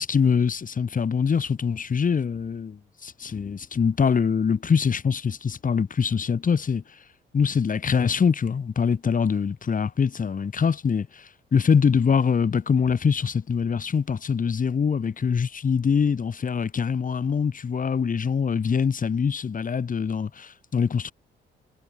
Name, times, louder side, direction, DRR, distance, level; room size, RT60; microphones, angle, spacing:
voice 1, 0.0-6.8 7.3-21.1, left 6 dB, 45° left, 5.1 m, -24 dB
cardioid pair, 90°, 20 cm